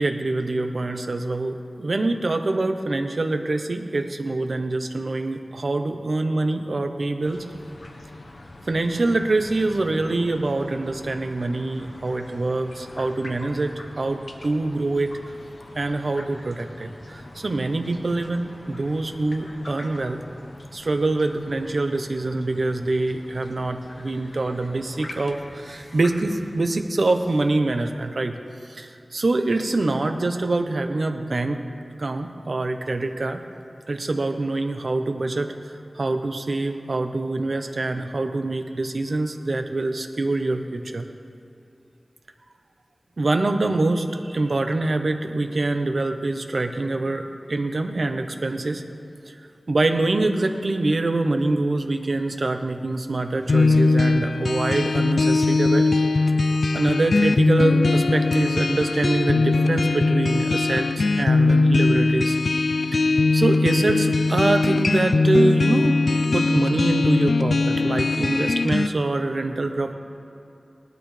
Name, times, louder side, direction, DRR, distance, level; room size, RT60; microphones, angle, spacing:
voice 1, 0.0-7.4 8.7-15.1 15.8-20.2 20.7-28.3 28.7-31.6 32.0-33.4 33.9-35.5 36.0-41.0 43.2-48.8 49.3-49.4 49.7-55.9 56.7-62.4 63.3-66.0 66.3-69.9, right 2 dB, 65° right, 6 dB, 0.9 m, -25 dB
sound 1, 7.2-26.7, left 1 dB, 65° left, 1.1 m, -43 dB
sound 2, 53.5-68.9, left 3 dB, 85° left, 0.3 m, -20 dB
19.5 x 12.0 x 3.3 m, 2.6 s
wide cardioid pair, 70°, 0 cm